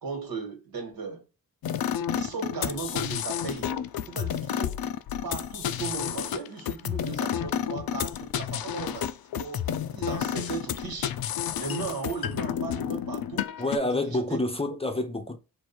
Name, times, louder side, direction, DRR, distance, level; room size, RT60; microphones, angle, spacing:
voice 1, 0.0-1.2 2.1-3.7 4.0-4.8 5.2-9.1 9.3-11.1 11.6-13.5 13.9-14.4, right 5 dB, 90° right, 1.6 m, -37 dB
sound 1, 1.6-13.8, left 9 dB, 90° left, 0.5 m, -31 dB
voice 2, 13.6-15.4, left 2 dB, 15° left, 0.5 m, -28 dB
4.6 x 2.6 x 4.3 m
wide cardioid pair, 140°, 35 cm